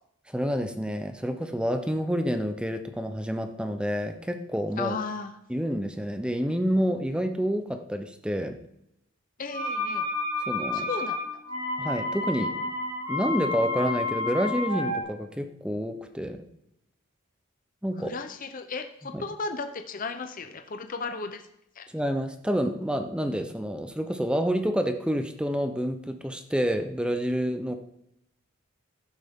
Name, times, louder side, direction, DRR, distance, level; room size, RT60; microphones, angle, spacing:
voice 1, 0.3-4.9 5.5-8.6 10.5-10.9 11.8-12.7 13.1-16.4 17.8-18.1 19.1-19.2 21.9-27.8, equal, 5° right, 7 dB, 0.6 m, -28 dB
voice 2, 4.8-5.3 9.4-10.1 10.7-11.2 17.9-21.5 21.7-21.8, left 4 dB, 40° left, 6 dB, 0.7 m, -35 dB
sound 1, 9.5-15.0, left 2 dB, 75° right, 2.8 m, -30 dB
11.5 x 9.3 x 3.6 m, 0.81 s
head